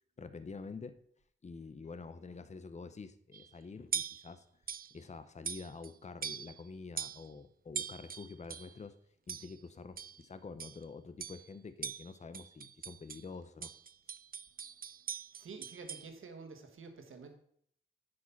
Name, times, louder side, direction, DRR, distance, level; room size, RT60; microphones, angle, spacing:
voice 1, 0.2-1.0 1.4-4.4 4.9-8.9 9.3-13.7, left 4 dB, 35° left, 12 dB, 0.7 m, -47 dB
sound 1, 3.3-3.5 3.9-4.3 4.7-4.9 5.4-5.9 6.2-6.6 7.0-7.3 7.7-8.8 9.3-9.6 10.0-10.2 10.6-10.8 11.2-11.5 11.8-13.2 13.6-16.1, right 7 dB, 45° right, 0.4 m, -42 dB
voice 2, 15.4-17.3, right 4 dB, 90° right, 5 dB, 1.4 m, -49 dB
9.9 x 5.2 x 5.7 m, 0.66 s
wide cardioid pair, 75°, 20 cm